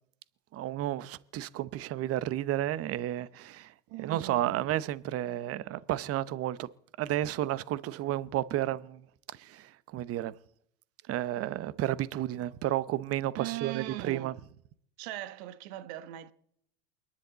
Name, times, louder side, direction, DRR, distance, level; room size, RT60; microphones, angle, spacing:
voice 1, 0.5-3.7 4.0-6.7 7.0-9.0 9.3-10.3 11.1-14.3, right 13 dB, 40° right, 0.8 m, -32 dB
voice 2, 3.9-4.7 13.4-14.3 15.0-16.3, right 14 dB, 65° right, 1.2 m, -39 dB
28.5 x 11.0 x 4.0 m
hypercardioid pair, 90°, 36 cm